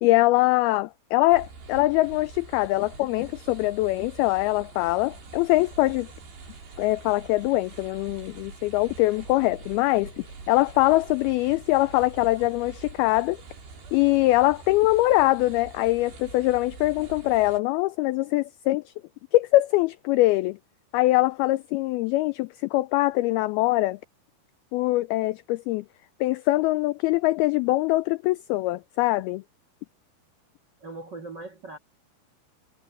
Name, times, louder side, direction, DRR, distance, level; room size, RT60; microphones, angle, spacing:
voice 1, 0.0-6.1 6.8-13.4 13.9-18.8 19.3-20.6 20.9-24.0 24.7-25.9 26.2-29.4, left 19 dB, 90° left, 2.2 m, -23 dB
sound 1, 1.3-17.6, right 4 dB, 70° right, 8.0 m, -45 dB
voice 2, 30.8-31.8, right 2 dB, 50° right, 1.3 m, -39 dB
omnidirectional pair, 4.9 m